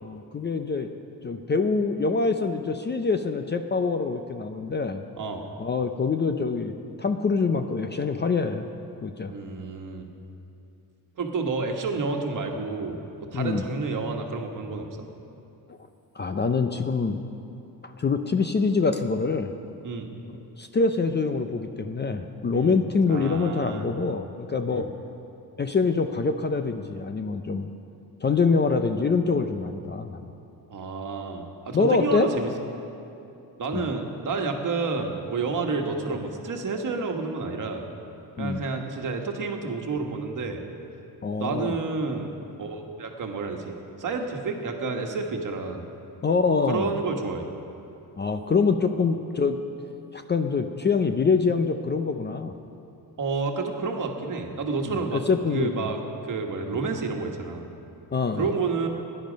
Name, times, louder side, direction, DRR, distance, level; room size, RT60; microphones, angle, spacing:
voice 1, 0.0-0.9 1.2-5.0 5.6-8.6 9.0-9.3 13.3-13.6 16.2-17.2 17.8-19.5 20.6-24.9 25.6-27.7 28.2-30.3 31.7-32.3 33.7-33.9 38.4-38.6 41.2-41.8 46.2-46.9 48.2-49.6 50.1-52.5 54.9-55.9 56.7-56.8 58.1-58.5, left 4 dB, 25° left, 7 dB, 0.5 m, -25 dB
voice 2, 9.3-10.0 11.2-15.0 19.8-20.1 22.5-22.7 23.1-23.9 24.7-24.9 30.7-32.5 33.6-37.8 38.4-40.6 41.4-42.3 42.6-45.8 46.7-47.4 53.2-55.2 55.5-56.0 56.2-57.7 58.3-58.9, right 4 dB, 50° right, 3 dB, 1.5 m, -30 dB
17.0 x 11.0 x 5.2 m, 2.7 s
cardioid pair, 125°, 41 cm